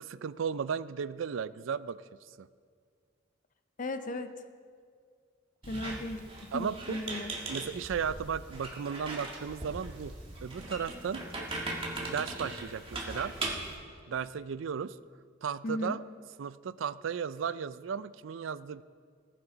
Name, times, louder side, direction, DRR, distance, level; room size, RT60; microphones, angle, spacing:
voice 1, 0.1-2.5 6.5-7.0 7.5-10.1 10.4-11.2 12.0-13.3 14.1-15.0 15.4-16.0 16.4-18.8, right 7 dB, 85° right, 17 dB, 0.4 m, -35 dB
voice 2, 3.8-4.3 5.7-7.4 15.6-16.0, left 1 dB, 40° left, 9 dB, 0.6 m, -36 dB
Squeak, 5.6-13.8, right 2 dB, 30° right, 2.0 m, -39 dB
20.0 x 10.0 x 3.9 m, 2.1 s
head